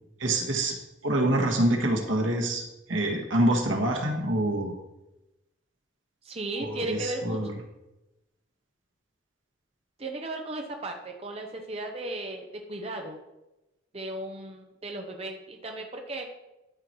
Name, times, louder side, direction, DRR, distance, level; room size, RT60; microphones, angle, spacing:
voice 1, 0.2-0.7 1.0-2.6 2.9-4.7 6.6-7.5, right 1 dB, 85° right, 2 dB, 1.6 m, -26 dB
voice 2, 6.2-7.4 10.0-13.2 13.9-16.3, right 2 dB, 30° right, 3 dB, 0.8 m, -36 dB
12.5 x 4.5 x 4.6 m, 0.96 s
head